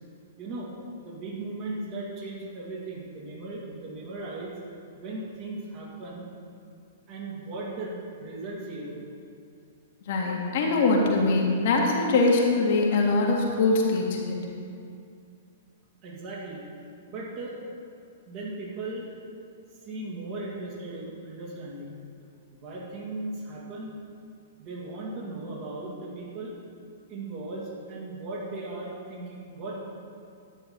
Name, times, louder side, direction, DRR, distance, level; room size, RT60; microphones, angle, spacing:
voice 1, 0.4-0.7 1.0-4.5 5.0-6.2 7.1-9.0 16.0-16.6 17.1-17.5 18.3-19.1 19.8-21.9 22.5-24.0 24.6-26.5 27.1-29.8, right 2 dB, 35° right, -4 dB, 2.7 m, -37 dB
voice 2, 10.1-14.4, left 3 dB, 50° left, -1 dB, 1.8 m, -23 dB
11.0 x 9.1 x 4.5 m, 2.4 s
figure-of-eight pair, 105°, 0 cm